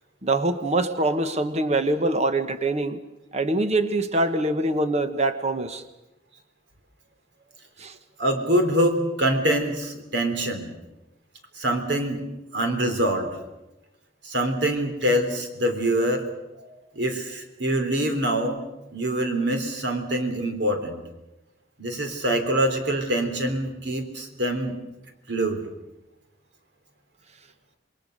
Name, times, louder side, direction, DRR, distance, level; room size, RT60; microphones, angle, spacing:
voice 1, 0.2-3.0 3.3-5.8 7.8-8.0, right 2 dB, 40° right, 9 dB, 1.3 m, -24 dB
voice 2, 8.2-10.7 11.6-12.2 12.5-13.3 14.2-16.2 17.0-18.6 18.9-21.0 21.8-24.8 25.3-25.7, right 1 dB, 70° right, 6 dB, 3.6 m, -24 dB
28.0 x 21.5 x 6.7 m, 0.98 s
head